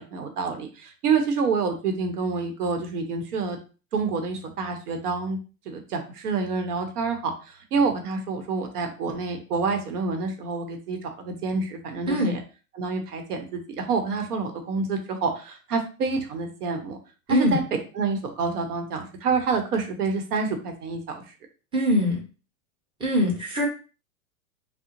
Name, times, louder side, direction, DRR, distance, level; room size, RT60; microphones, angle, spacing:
voice 1, 0.0-3.6 3.9-5.4 5.7-12.4 12.8-17.0 17.3-21.2, right 4 dB, 80° right, 5 dB, 0.9 m, -28 dB
voice 2, 17.3-17.6 21.7-22.2 23.0-23.7, left 1 dB, 10° right, -2 dB, 0.9 m, -22 dB
3.6 x 2.0 x 2.9 m, 0.34 s
hypercardioid pair, 125°, 45 cm